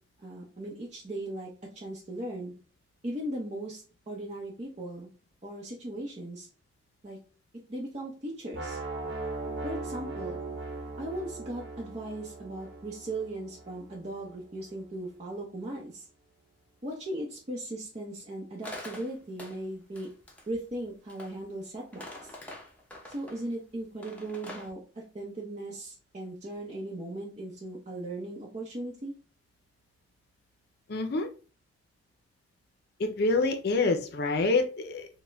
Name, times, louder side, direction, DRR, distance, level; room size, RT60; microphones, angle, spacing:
voice 1, 0.2-2.5 3.0-5.1 5.4-6.5 7.0-7.2 7.7-8.8 9.6-10.4 11.0-16.1 16.8-20.1 20.5-22.3 23.1-29.1, right 1 dB, 40° right, -4 dB, 0.7 m, -38 dB
sound 1, 8.5-14.5, right 3 dB, 70° right, 0.9 m, -39 dB
sound 2, 18.6-19.6 19.9-21.4 21.8-23.4 24.0-24.7, left 1 dB, 10° left, 0.7 m, -45 dB
voice 2, 30.9-31.3 33.0-35.1, left 3 dB, 60° left, 6 dB, 0.5 m, -26 dB
4.3 x 2.1 x 3.3 m, 0.36 s
head